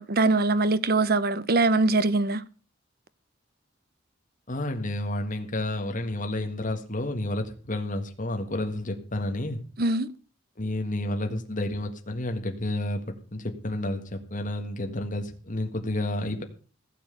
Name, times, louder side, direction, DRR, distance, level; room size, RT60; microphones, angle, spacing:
voice 1, 0.0-2.4 9.8-10.1, right 3 dB, 50° right, 0.8 m, -22 dB
voice 2, 4.5-9.6 10.6-16.4, left 1 dB, 40° left, 1.7 m, -30 dB
16.0 x 7.4 x 6.8 m
head